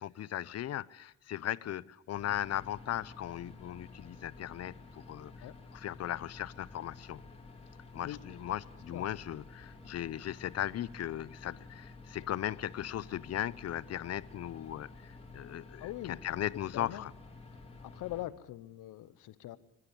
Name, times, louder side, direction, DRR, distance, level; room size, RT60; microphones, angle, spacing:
voice 1, 0.0-7.2 7.9-17.1, left 12 dB, 55° left, 0.7 m, -38 dB
sound 1, 2.1-18.3, left 3 dB, 20° left, 3.3 m, -51 dB
voice 2, 15.8-16.2 16.7-17.1 17.8-19.6, left 15 dB, 85° left, 0.9 m, -42 dB
22.5 x 12.0 x 9.9 m
cardioid pair, 90°, 30 cm